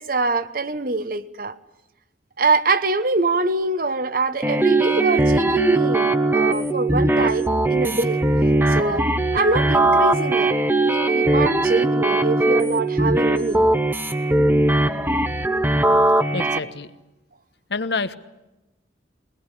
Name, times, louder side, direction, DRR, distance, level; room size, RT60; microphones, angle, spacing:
voice 1, 0.0-1.6 2.4-8.2 8.7-13.7, right 3 dB, 45° right, 13 dB, 1.0 m, -24 dB
sound 1, 4.4-16.6, right 2 dB, 10° right, 0.9 m, -19 dB
voice 2, 16.3-16.9 17.7-18.1, left 3 dB, 60° left, 12 dB, 1.1 m, -27 dB
23.0 x 19.5 x 9.9 m, 1.0 s
head